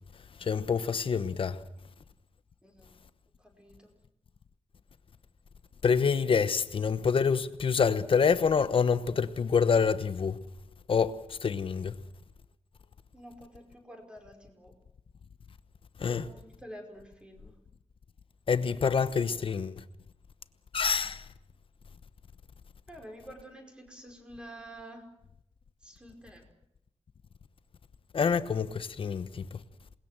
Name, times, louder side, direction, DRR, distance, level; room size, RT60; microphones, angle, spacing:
voice 1, 0.4-1.6 5.8-10.4 10.9-11.9 16.0-16.3 18.5-19.8 20.7-21.2 28.1-29.6, left 6 dB, 50° left, 1.1 m, -27 dB
voice 2, 2.6-3.0 3.4-3.9 13.1-14.7 16.0-17.5 22.9-25.1 25.8-26.5, equal, 10° right, 5.1 m, -48 dB
28.0 x 20.5 x 7.6 m
wide cardioid pair, 175°, 12 cm